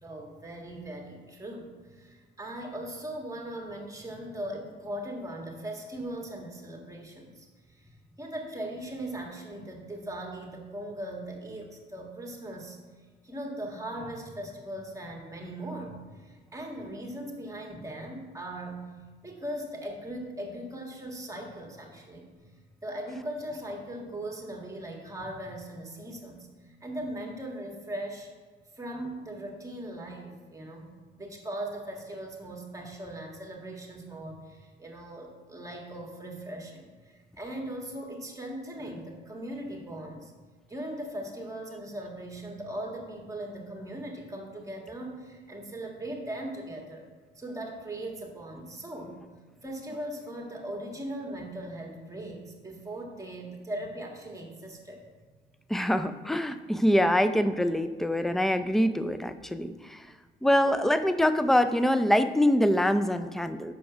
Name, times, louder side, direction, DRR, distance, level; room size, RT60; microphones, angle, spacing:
voice 1, 0.0-12.8 13.2-18.8 19.2-28.3 28.7-30.9 31.2-40.3 40.7-47.1 47.3-49.2 49.6-55.0, right 1 dB, 15° right, 0 dB, 1.7 m, -39 dB
voice 2, 55.7-60.0 60.4-63.7, left 1 dB, ahead, 10 dB, 0.4 m, -24 dB
6.0 x 4.9 x 6.1 m, 1.5 s
cardioid pair, 90°, 20 cm